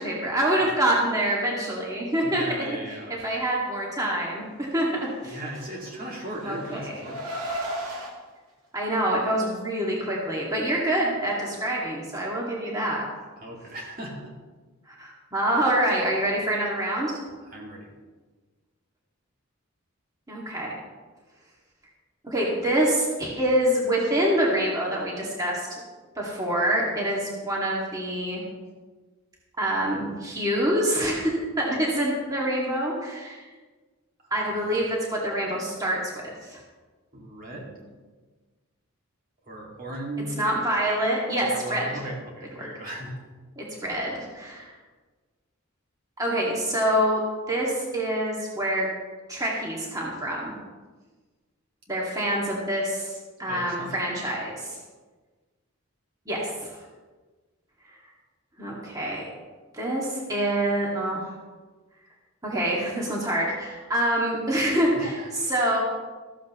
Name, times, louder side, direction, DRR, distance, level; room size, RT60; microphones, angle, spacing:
voice 1, 0.0-2.4 3.1-5.4 6.4-6.8 8.7-13.0 14.9-17.2 20.3-20.7 22.2-25.8 26.2-28.5 29.6-33.4 34.3-36.6 40.4-42.0 42.6-42.7 43.6-44.7 46.2-47.2 47.5-48.9 49.3-50.5 51.9-54.8 56.3-56.8 58.6-59.3 59.7-61.3 62.4-65.8, right 1 dB, 15° right, -4 dB, 2.2 m, -26 dB
voice 2, 2.2-3.2 5.2-7.3 13.4-14.3 17.4-17.9 34.3-34.5 37.1-37.8 39.5-40.4 41.4-43.2 53.5-54.1 65.0-65.3, right 1 dB, 40° right, -2 dB, 2.3 m, -37 dB
Car, 5.6-8.1, right 1 dB, 90° right, 2.5 m, -35 dB
14.0 x 14.0 x 3.1 m, 1.4 s
head